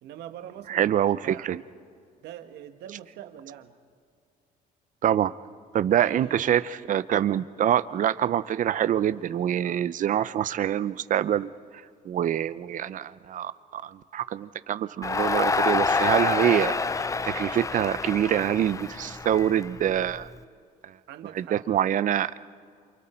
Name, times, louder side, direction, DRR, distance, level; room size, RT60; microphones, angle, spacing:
voice 1, 0.0-0.9 1.2-1.6 2.2-3.8 5.8-6.4 21.1-22.0, right 11 dB, 80° right, 7 dB, 1.6 m, -43 dB
voice 2, 0.7-1.6 5.0-5.3 5.7-11.5 12.0-20.3 20.8-20.9 21.3-22.4, right 10 dB, 50° right, 15 dB, 0.7 m, -25 dB
Crowd, 15.0-20.2, left 4 dB, 20° left, 0.5 m, -27 dB
28.5 x 27.5 x 4.5 m, 2.2 s
cardioid pair, 110°, 17 cm